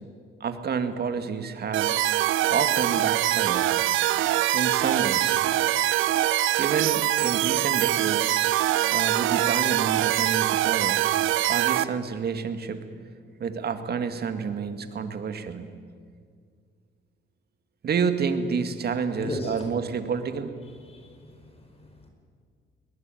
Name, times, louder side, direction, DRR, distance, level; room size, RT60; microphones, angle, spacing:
voice 1, 0.4-2.0 2.5-3.7 4.5-5.4 6.6-8.3 8.9-11.0 11.5-12.8 13.4-15.7 17.8-20.5, right 6 dB, 55° right, 8 dB, 2.1 m, -29 dB
sound 1, 1.7-11.8, right 14 dB, 80° right, 0.7 m, -23 dB
voice 2, 19.2-19.7 20.9-22.1, left 1 dB, 30° left, 4 dB, 4.8 m, -37 dB
20.5 x 20.5 x 9.2 m, 2.1 s
cardioid pair, 90°, 20 cm